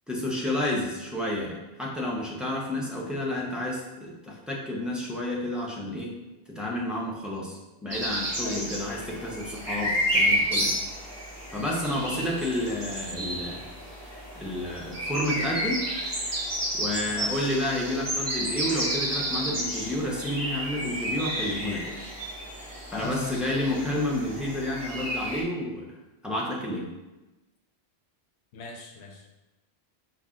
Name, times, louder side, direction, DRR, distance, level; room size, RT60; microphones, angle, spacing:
voice 1, 0.1-6.1 6.5-10.7 11.5-13.7 14.3-15.9 16.7-22.0 22.9-25.9 26.2-26.9, left 1 dB, ahead, -4 dB, 0.6 m, -30 dB
sound 1, 7.9-25.4, equal, 20° right, 1.0 m, -31 dB
voice 2, 8.4-8.9 12.1-12.3 17.1-17.5 22.9-23.8 28.5-29.3, left 2 dB, 85° left, 2 dB, 0.9 m, -40 dB
5.3 x 2.3 x 3.6 m, 1.0 s
omnidirectional pair, 1.1 m